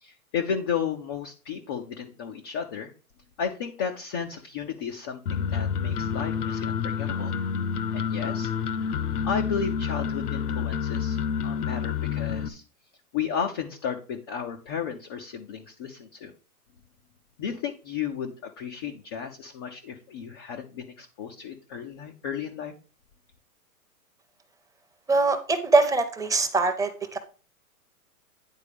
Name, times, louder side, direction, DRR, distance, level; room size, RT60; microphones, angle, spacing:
voice 1, 0.0-2.9 3.4-7.3 7.9-8.9 9.2-11.2 11.4-12.6 13.1-16.3 17.4-22.7, left 7 dB, 20° left, 2 dB, 0.4 m, -33 dB
sound 1, 5.3-12.5, left 7 dB, 75° left, 1.0 m, -28 dB
voice 2, 25.1-27.2, right 3 dB, 5° right, 7 dB, 0.7 m, -23 dB
9.9 x 4.1 x 5.0 m, 0.35 s
hypercardioid pair, 135°, 46 cm